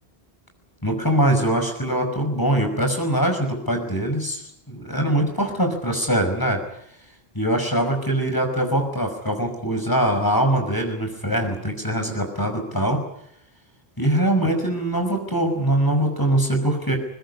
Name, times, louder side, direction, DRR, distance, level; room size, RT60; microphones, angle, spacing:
voice 1, 0.8-6.6 7.3-13.0 14.0-17.0, right 1 dB, 20° left, 4 dB, 5.6 m, -22 dB
22.0 x 20.5 x 9.8 m, 0.74 s
omnidirectional pair, 1.1 m